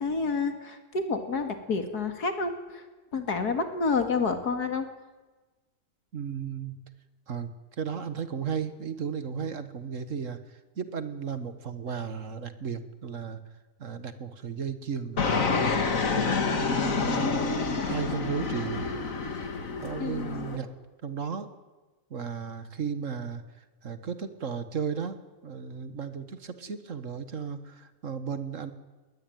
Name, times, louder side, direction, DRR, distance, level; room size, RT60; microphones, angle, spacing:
voice 1, 0.0-2.8 3.1-4.9 20.0-20.5, left 4 dB, 90° left, 6 dB, 2.9 m, -29 dB
voice 2, 6.1-6.8 7.3-13.4 13.8-15.6 16.1-17.3 17.8-18.9 19.8-20.7 21.0-21.5 22.1-28.7, right 6 dB, 55° right, 11 dB, 1.8 m, -35 dB
Fixed-wing aircraft airplane, 15.2-20.6, left 4 dB, 60° left, 2.3 m, -28 dB
21.0 x 19.0 x 9.3 m, 1.2 s
omnidirectional pair, 1.6 m